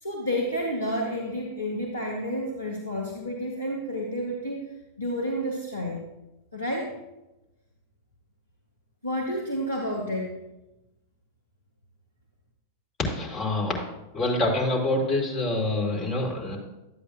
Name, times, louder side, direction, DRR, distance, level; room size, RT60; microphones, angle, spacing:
voice 1, 0.0-4.7 5.0-6.1 6.5-6.9 9.0-10.3, equal, 80° left, -1 dB, 1.0 m, -30 dB
voice 2, 13.0-13.8 14.1-16.6, left 2 dB, 30° left, -3 dB, 2.6 m, -26 dB
12.0 x 8.2 x 2.4 m, 0.98 s
figure-of-eight pair, 90°, 0 cm